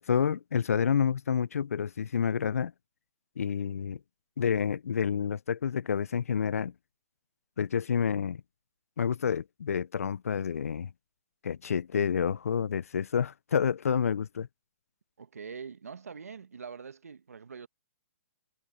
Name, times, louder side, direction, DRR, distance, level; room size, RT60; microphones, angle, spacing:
voice 1, 0.0-2.7 3.4-4.0 4.4-6.7 7.6-8.4 9.0-10.9 11.4-14.5, left 7 dB, 80° left, 0.5 m, -29 dB
voice 2, 15.2-17.7, right 6 dB, 85° right, 1.3 m, -44 dB
hypercardioid pair, 135°, 8 cm